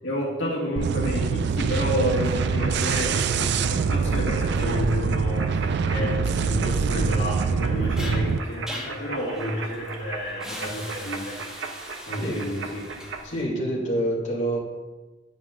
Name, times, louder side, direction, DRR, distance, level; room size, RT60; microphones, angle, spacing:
voice 1, 0.0-11.4 12.1-12.9, equal, 70° left, -5 dB, 1.8 m, -30 dB
sound 1, 0.8-8.4, right 5 dB, 60° right, 0.3 m, -24 dB
sound 2, 2.1-13.2, right 4 dB, 75° right, 0.8 m, -38 dB
sound 3, 7.3-13.4, equal, 5° right, 1.2 m, -40 dB
voice 2, 13.2-14.6, right 1 dB, 40° left, -6 dB, 2.4 m, -26 dB
9.3 x 9.0 x 2.5 m, 1.3 s
head